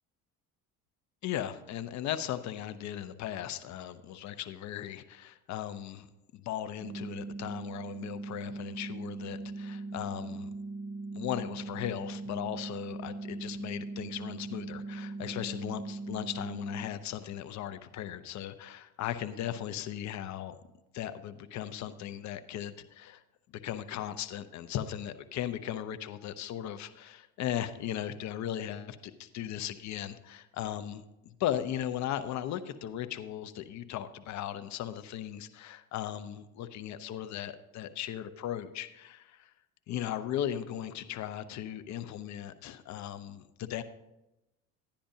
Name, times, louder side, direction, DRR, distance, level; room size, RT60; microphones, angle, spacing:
voice 1, 1.2-6.1 6.3-10.5 11.1-20.6 20.9-23.2 23.5-39.5 39.9-43.8, left 11 dB, 55° left, 10 dB, 0.7 m, -37 dB
sound 1, 6.8-16.8, right 3 dB, 5° right, 2.9 m, -40 dB
11.5 x 10.0 x 2.7 m, 0.95 s
supercardioid pair, 95°, 34 cm